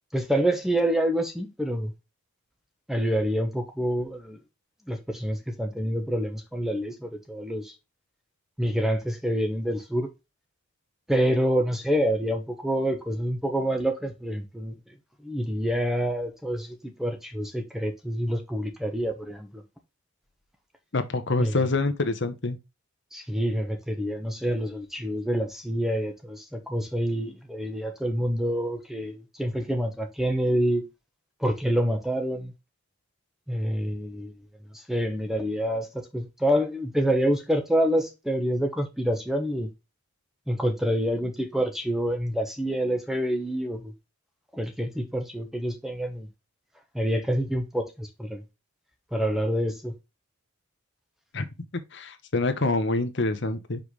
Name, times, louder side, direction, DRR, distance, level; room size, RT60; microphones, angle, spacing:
voice 1, 0.1-1.9 2.9-4.4 4.9-7.7 8.6-10.1 11.1-14.7 15.2-19.6 21.4-21.6 23.1-30.8 31.4-32.5 33.5-34.3 34.7-39.7 40.5-43.9 44.5-46.3 46.9-48.4 49.1-49.9, equal, ahead, 1.0 m, -27 dB
voice 2, 20.9-22.6 51.3-51.5 51.7-53.8, left 3 dB, 50° left, 1.0 m, -26 dB
5.7 x 5.3 x 3.1 m
head